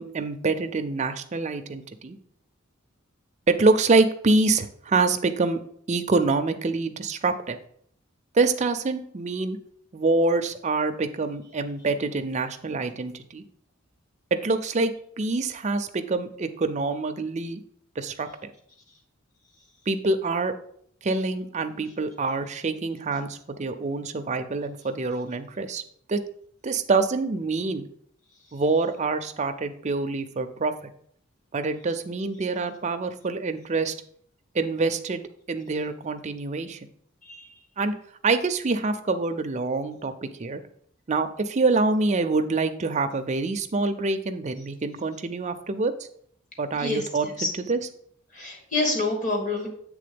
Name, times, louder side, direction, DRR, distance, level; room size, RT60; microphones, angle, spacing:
voice 1, 0.0-2.2 3.5-5.6 5.9-7.6 8.3-9.6 9.9-13.4 14.3-14.9 15.2-17.6 18.0-18.5 19.9-20.5 21.0-25.8 26.1-26.2 26.6-27.9 28.5-30.9 31.5-33.9 34.5-36.9 37.8-37.9 38.2-40.6 41.1-45.9 46.6-47.8, right 3 dB, 35° right, 8 dB, 0.5 m, -26 dB
voice 2, 48.3-49.7, left 2 dB, 40° left, 1 dB, 1.7 m, -27 dB
7.7 x 3.5 x 5.1 m, 0.64 s
head